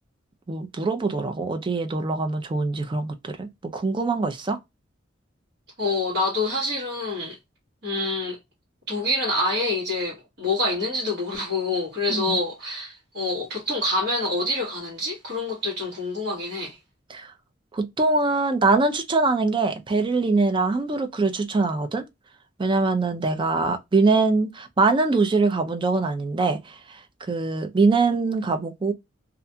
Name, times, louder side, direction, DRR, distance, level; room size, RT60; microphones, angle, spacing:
voice 1, 0.5-4.6 12.1-12.4 17.1-17.3 17.7-22.0 22.6-27.0 27.3-28.9, right 3 dB, 25° right, 0.4 m, -23 dB
voice 2, 5.8-7.4 7.8-8.4 8.9-16.8, left 2 dB, 60° right, 1.1 m, -26 dB
2.4 x 2.2 x 2.6 m
head